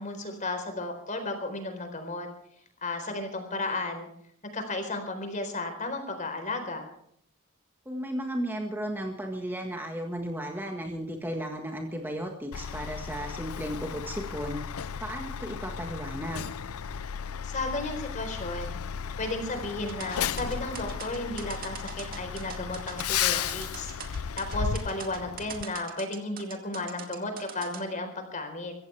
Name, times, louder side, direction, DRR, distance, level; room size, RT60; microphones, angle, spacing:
voice 1, 0.0-2.3 2.8-4.1 4.5-6.8 17.4-18.8 19.2-23.9 24.4-28.7, left 2 dB, 35° left, 6 dB, 4.2 m, -34 dB
voice 2, 7.8-14.6 15.0-16.5, equal, 10° right, 2 dB, 1.7 m, -34 dB
Truck, 12.5-25.6, left 8 dB, 85° left, 0.6 m, -34 dB
sound 1, 19.9-27.8, right 7 dB, 40° right, 2.2 m, -42 dB
24.0 x 16.0 x 3.5 m, 0.67 s
head